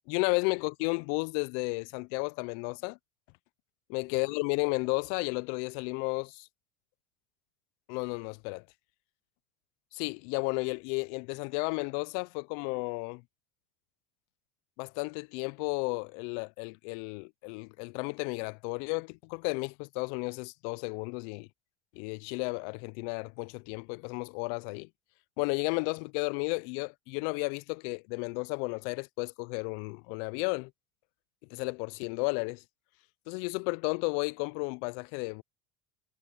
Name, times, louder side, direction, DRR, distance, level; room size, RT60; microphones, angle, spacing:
voice 1, 0.1-3.0 3.9-6.5 7.9-8.6 9.9-13.2 14.8-21.5 21.9-24.9 25.4-30.7 31.5-32.6 33.3-35.4, left 32 dB, 70° left, 0.5 m, -33 dB
supercardioid pair, 105°, 37 cm